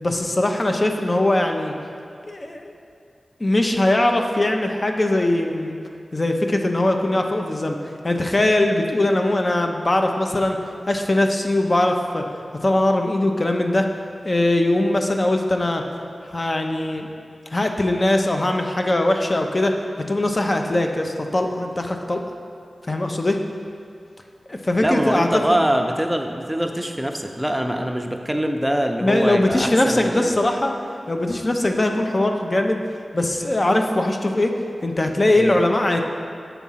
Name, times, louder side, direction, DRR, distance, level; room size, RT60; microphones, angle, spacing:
voice 1, 0.0-1.7 2.3-2.7 3.4-5.8 6.1-7.8 8.0-10.6 10.9-12.2 12.6-13.9 14.2-15.8 16.3-17.1 17.5-22.2 22.9-23.4 24.5-25.6 29.0-30.7 31.1-32.8 33.1-34.5 34.8-36.0, left 1 dB, 40° left, 4 dB, 0.6 m, -21 dB
voice 2, 24.8-30.3 35.3-35.6, equal, 10° right, 4 dB, 0.6 m, -23 dB
7.0 x 3.6 x 5.6 m, 2.4 s
cardioid pair, 40°, 0 cm